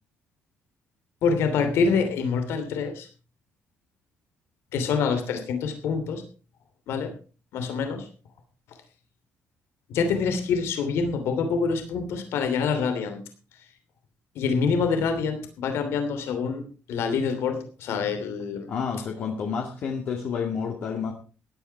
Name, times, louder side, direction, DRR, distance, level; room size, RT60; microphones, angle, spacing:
voice 1, 1.2-3.1 4.7-6.2 6.9-7.1 7.5-8.1 9.9-13.2 14.3-16.6 16.9-18.7, left 5 dB, 70° left, 7 dB, 3.0 m, -26 dB
voice 2, 18.7-21.1, left 6 dB, 45° left, 2 dB, 2.2 m, -29 dB
16.0 x 11.5 x 4.6 m, 0.37 s
cardioid pair, 165°, 4 cm